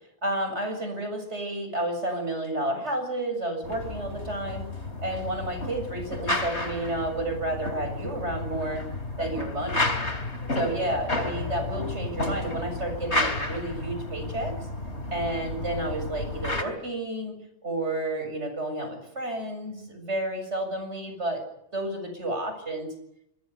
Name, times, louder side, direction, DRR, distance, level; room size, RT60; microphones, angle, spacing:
voice 1, 0.2-4.7 5.0-8.9 9.2-10.0 10.5-14.7 15.1-21.4 21.7-22.9, right 1 dB, 75° right, 7 dB, 7.4 m, -31 dB
sound 1, 3.6-16.6, left 2 dB, 70° left, 3.3 m, -32 dB
25.5 x 21.0 x 8.4 m, 0.76 s
omnidirectional pair, 1.2 m